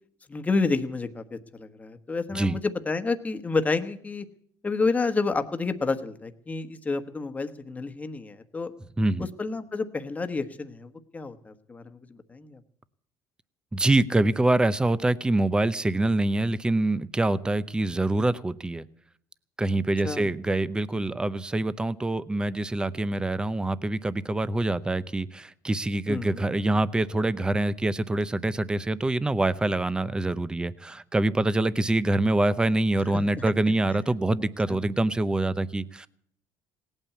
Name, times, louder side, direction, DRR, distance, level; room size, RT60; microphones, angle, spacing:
voice 1, 0.3-4.3 4.6-8.7 9.2-12.6 20.0-20.3 26.1-26.4 33.1-33.4 34.7-34.8, left 3 dB, 20° left, 8 dB, 1.2 m, -30 dB
voice 2, 9.0-9.3 13.7-18.8 19.6-36.1, right 2 dB, 10° right, 16 dB, 0.7 m, -25 dB
18.0 x 8.9 x 8.4 m, 0.65 s
cardioid pair, 120°, 8 cm